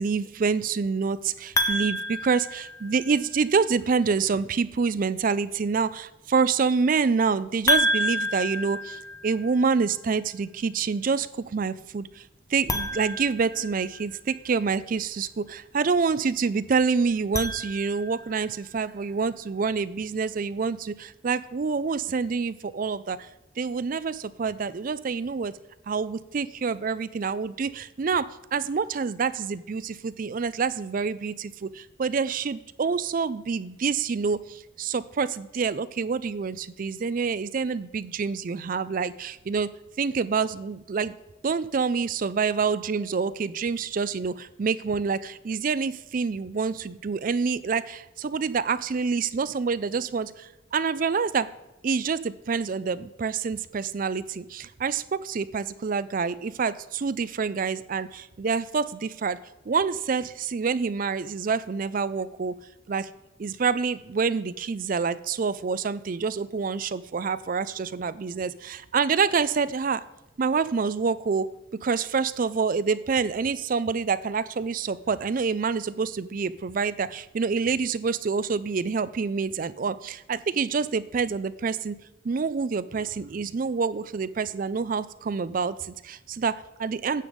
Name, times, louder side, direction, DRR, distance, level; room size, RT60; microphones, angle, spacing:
voice 1, 0.0-12.2 12.5-23.3 23.6-25.5 25.9-39.7 40.0-41.1 41.4-51.5 51.8-59.4 59.7-62.6 62.9-63.1 63.4-70.0 70.4-71.5 71.8-82.0 82.2-87.2, right 5 dB, 40° right, 16 dB, 0.4 m, -27 dB
sound 1, 1.6-3.3 7.7-9.7 12.6-14.2 17.1-18.3, left 1 dB, 15° left, 0.7 m, -29 dB
9.3 x 7.1 x 5.1 m, 0.95 s
head